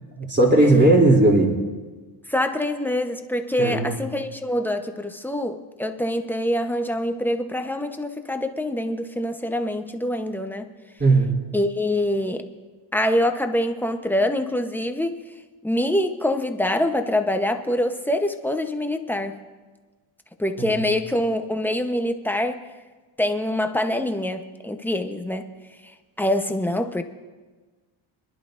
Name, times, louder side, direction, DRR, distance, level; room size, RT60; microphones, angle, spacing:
voice 1, 0.2-1.5 3.6-3.9 11.0-11.4 20.6-20.9, right 2 dB, 20° right, -2 dB, 3.1 m, -17 dB
voice 2, 2.3-10.7 11.5-12.5 12.9-15.2 15.6-19.4 20.4-22.6 23.2-25.5 25.8-27.0, left 1 dB, 5° left, 6 dB, 0.9 m, -25 dB
27.0 x 11.0 x 2.6 m, 1.3 s
cardioid pair, 95°, 50 cm